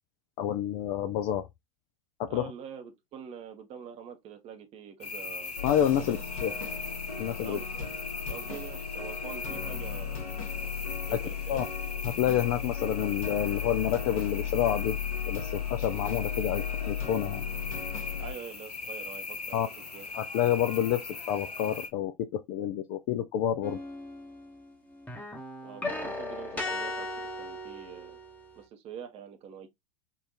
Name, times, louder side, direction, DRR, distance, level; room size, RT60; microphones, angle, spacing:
voice 1, 0.4-1.5 2.2-2.5 5.6-6.5 7.2-7.6 11.1-11.2 11.5-11.6 12.0-15.0 15.3-17.4 19.5-19.7 20.1-23.8, left 10 dB, 40° left, 0.4 m, -29 dB
voice 2, 2.3-5.5 6.0-6.2 7.4-7.9 8.3-10.2 11.1-11.7 18.2-19.6 19.9-20.1 25.6-28.2 28.6-29.7, right 7 dB, 30° right, 0.8 m, -45 dB
sound 1, 5.0-21.9, left 4 dB, 85° left, 0.7 m, -40 dB
sound 2, 5.6-18.3, left 8 dB, 65° left, 1.6 m, -35 dB
sound 3, 23.6-24.7 25.0-28.6, left 2 dB, 10° left, 0.9 m, -37 dB
3.8 x 2.4 x 2.8 m
figure-of-eight pair, 85°, 19 cm